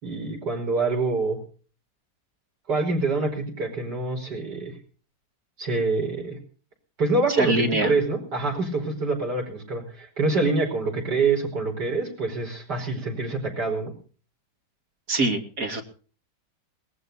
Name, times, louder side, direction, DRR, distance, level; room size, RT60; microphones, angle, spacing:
voice 1, 0.0-1.4 2.7-4.8 5.6-6.4 7.0-13.9, right 3 dB, 75° right, 2 dB, 5.8 m, -26 dB
voice 2, 7.3-7.9 15.1-15.8, right 2 dB, 55° right, 4 dB, 2.8 m, -24 dB
23.0 x 19.5 x 2.7 m, 0.40 s
omnidirectional pair, 1.8 m